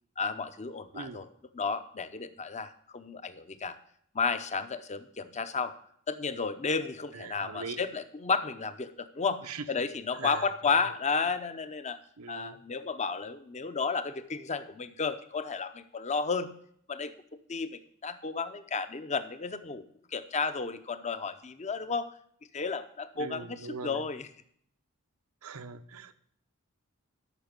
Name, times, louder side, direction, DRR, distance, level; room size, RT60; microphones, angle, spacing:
voice 1, 0.2-1.3 1.5-3.8 4.1-5.7 6.1-12.0 12.3-16.5 16.9-17.1 17.5-19.9 20.1-22.1 22.5-24.3, left 5 dB, 35° left, 11 dB, 0.7 m, -32 dB
voice 2, 0.9-1.3 7.1-7.8 9.4-9.6 10.2-10.5 10.7-10.8 12.2-12.6 23.2-24.0 25.4-26.1, right 5 dB, 90° right, 10 dB, 0.8 m, -41 dB
13.0 x 5.8 x 5.2 m, 0.66 s
head